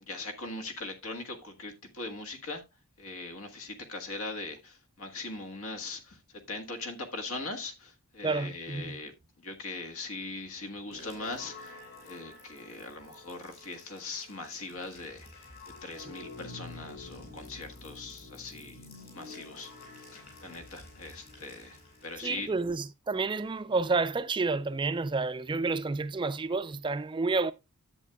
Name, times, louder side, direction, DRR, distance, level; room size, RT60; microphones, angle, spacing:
voice 1, 0.1-2.6 3.0-6.2 6.5-9.1 9.4-11.7 12.0-15.3 15.8-18.8 19.1-19.7 20.1-21.8 22.0-22.5, left 3 dB, 70° left, 1.6 m, -40 dB
voice 2, 8.2-9.0 22.2-27.5, right 3 dB, 20° right, 0.4 m, -30 dB
sound 1, 10.9-22.7, left 2 dB, 45° left, 5.7 m, -49 dB
10.5 x 8.3 x 2.3 m
head